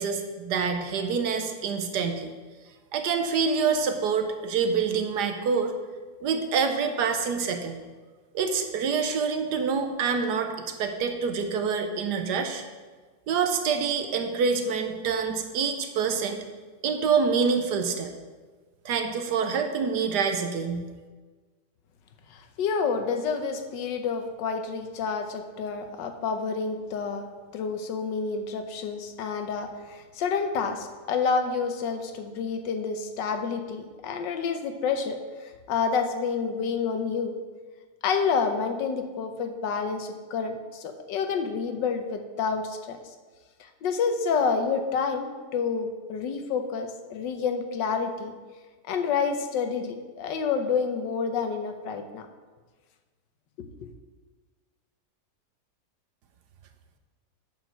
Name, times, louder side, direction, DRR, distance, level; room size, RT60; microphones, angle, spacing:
voice 1, 0.0-2.3 2.9-5.7 6.2-7.8 8.3-12.6 13.3-16.4 16.8-18.1 18.8-20.9, right 5 dB, 70° right, 6 dB, 1.3 m, -26 dB
voice 2, 22.3-27.3 27.5-37.3 38.0-43.0 43.6-48.3 48.8-52.2 53.6-53.7, left 5 dB, 85° left, 6 dB, 1.5 m, -29 dB
9.0 x 4.8 x 6.3 m, 1.4 s
omnidirectional pair, 1.9 m